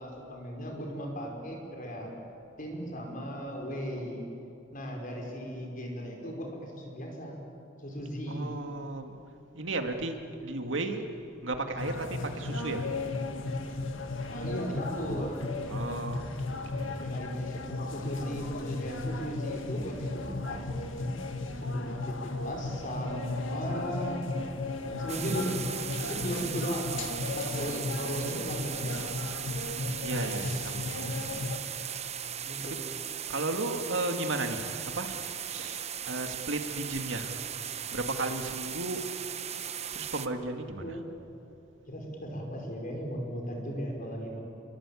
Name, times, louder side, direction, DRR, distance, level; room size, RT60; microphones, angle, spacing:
voice 1, 0.0-2.1 2.6-4.2 4.7-7.4 7.8-8.5 14.3-15.5 17.0-21.1 21.6-24.2 24.9-25.6 26.0-27.0 27.3-29.0 32.4-32.9 40.8-41.0 41.9-44.4, equal, 45° left, 1 dB, 5.0 m, -37 dB
voice 2, 8.3-9.2 9.5-11.1 11.4-12.9 15.7-16.2 16.5-17.1 30.0-32.0 32.6-32.8 33.3-37.5 37.9-39.0 39.9-41.0, right 2 dB, 75° right, 5 dB, 2.2 m, -35 dB
sound 1, 11.8-31.6, left 2 dB, 85° left, 1.8 m, -35 dB
sound 2, 25.1-40.3, right 9 dB, 35° right, 0.8 m, -37 dB
28.0 x 23.5 x 8.5 m, 2.7 s
head